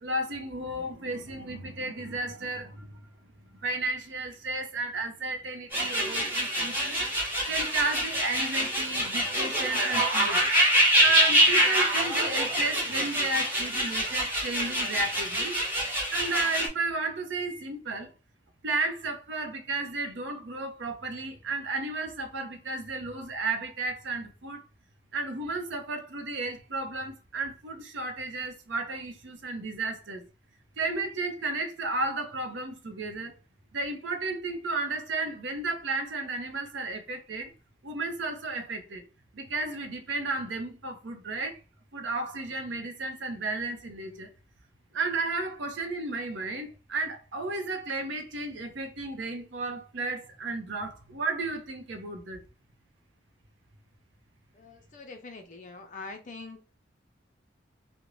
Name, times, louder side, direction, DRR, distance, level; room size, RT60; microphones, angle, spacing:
voice 1, 0.0-3.0 3.6-7.0 7.5-10.5 11.0-15.6 16.1-18.1 18.6-24.6 25.1-30.2 30.8-33.3 33.7-37.5 37.8-39.0 39.3-41.6 41.9-44.3 44.9-52.4, right 3 dB, 80° right, 0.6 m, -33 dB
sound 1, 5.7-16.7, equal, 10° right, 0.8 m, -25 dB
voice 2, 54.6-56.7, left 3 dB, 40° left, 0.5 m, -44 dB
2.5 x 2.1 x 3.0 m
head